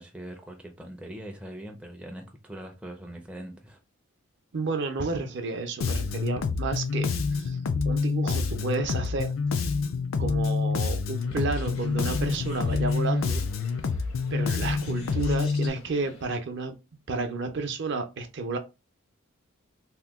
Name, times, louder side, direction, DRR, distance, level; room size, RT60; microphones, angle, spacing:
voice 1, 0.0-3.8, right 1 dB, 5° right, 0.4 m, -42 dB
voice 2, 4.5-7.6 7.9-9.3 10.2-13.4 14.3-16.7 17.1-18.6, right 3 dB, 55° right, 0.6 m, -31 dB
Bass guitar, 5.8-15.7, left 4 dB, 70° left, 0.4 m, -27 dB
Bird, 11.2-16.3, left 3 dB, 85° left, 1.0 m, -48 dB
2.8 x 2.1 x 3.4 m
head